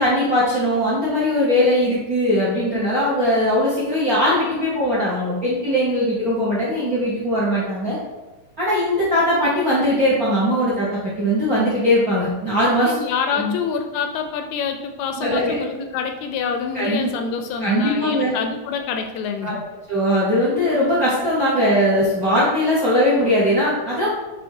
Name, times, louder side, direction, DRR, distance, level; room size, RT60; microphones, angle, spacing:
voice 1, 0.0-8.0 8.6-13.0 13.3-13.5 15.2-15.6 16.7-17.1 17.6-18.3 19.4-19.5 19.9-24.1, equal, 75° right, -7 dB, 0.8 m, -20 dB
voice 2, 12.8-19.6 21.6-21.7, left 6 dB, 80° left, 5 dB, 1.6 m, -26 dB
6.3 x 3.3 x 4.6 m, 1.2 s
omnidirectional pair, 3.5 m